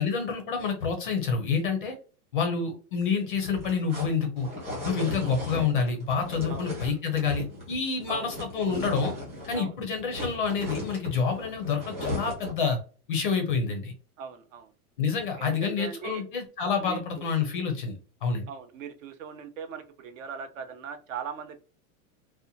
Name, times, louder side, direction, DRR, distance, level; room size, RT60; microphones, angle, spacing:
voice 1, 0.0-1.9 2.3-4.5 4.8-9.1 9.5-12.8 13.1-13.9 15.0-17.9 18.2-18.5, left 5 dB, 40° left, 4 dB, 0.4 m, -28 dB
sound 1, 3.3-9.7 9.9-12.6, left 1 dB, 15° right, 0.9 m, -36 dB
voice 2, 5.2-5.6 6.5-6.7 8.1-8.3 9.5-9.7 14.2-14.7 15.3-16.2 16.8-17.2 18.5-21.6, right 6 dB, 60° right, 8 dB, 0.5 m, -40 dB
2.7 x 2.1 x 2.6 m, 0.37 s
supercardioid pair, 170°, 45 cm